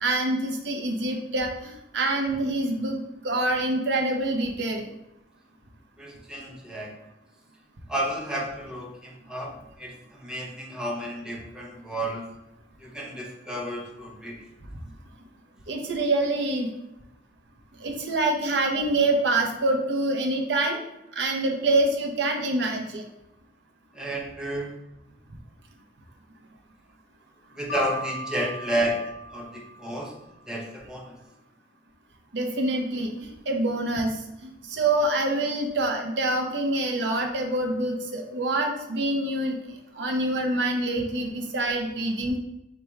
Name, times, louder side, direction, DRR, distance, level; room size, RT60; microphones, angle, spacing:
voice 1, 0.0-3.0 3.2-4.9 15.7-16.7 17.8-20.8 21.2-23.0 32.3-33.1 33.5-39.6 39.9-42.4, right 2 dB, 80° right, 2 dB, 0.6 m, -26 dB
voice 2, 6.0-6.9 7.9-12.3 12.8-14.4 23.9-24.8 27.6-29.0 29.3-30.1 30.5-31.2, right 1 dB, 5° right, -2 dB, 0.6 m, -31 dB
Mallet percussion, 27.7-30.5, left 1 dB, 60° left, 0.4 m, -38 dB
4.1 x 2.2 x 4.6 m, 0.89 s
head